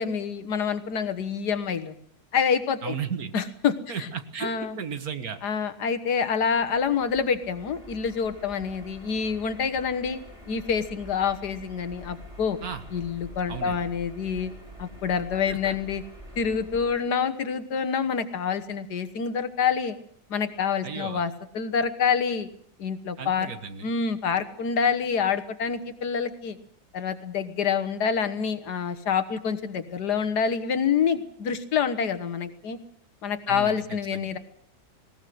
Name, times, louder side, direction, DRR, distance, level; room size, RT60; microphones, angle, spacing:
voice 1, 0.0-1.9 2.3-3.0 3.3-3.8 4.4-4.8 5.4-10.2 10.5-12.6 12.9-14.5 14.8-16.0 16.4-20.0 20.3-22.5 22.8-23.5 23.8-26.6 26.9-32.8 33.2-34.4, left 6 dB, 80° left, 11 dB, 1.8 m, -27 dB
voice 2, 2.8-3.3 3.9-5.4 12.6-12.8 13.5-13.8 15.5-15.8 20.8-21.2 23.2-23.9 33.5-33.8 34.1-34.3, right 7 dB, 65° right, 9 dB, 1.9 m, -34 dB
sound 1, 6.4-17.0, equal, 20° right, 5.3 m, -46 dB
19.5 x 18.5 x 7.8 m, 0.66 s
omnidirectional pair, 1.7 m